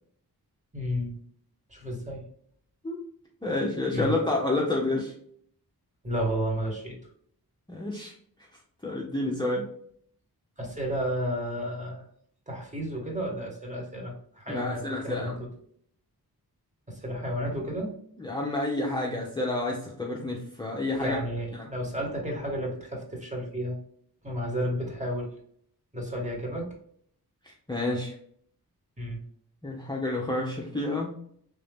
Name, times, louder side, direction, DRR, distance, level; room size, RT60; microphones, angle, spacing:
voice 1, 0.7-1.2 1.7-2.2 3.9-4.2 6.0-7.0 10.6-12.1 12.5-15.5 16.9-17.9 21.0-23.8 24.2-25.3 25.9-26.7 29.0-29.2, equal, 20° right, -1 dB, 1.5 m, -32 dB
voice 2, 3.4-5.1 7.7-8.1 8.8-9.7 14.5-15.4 18.2-21.2 21.5-21.7 27.4-28.1 29.6-31.1, left 2 dB, 10° left, -3 dB, 0.7 m, -29 dB
3.6 x 2.7 x 3.5 m, 0.64 s
wide cardioid pair, 70°, 38 cm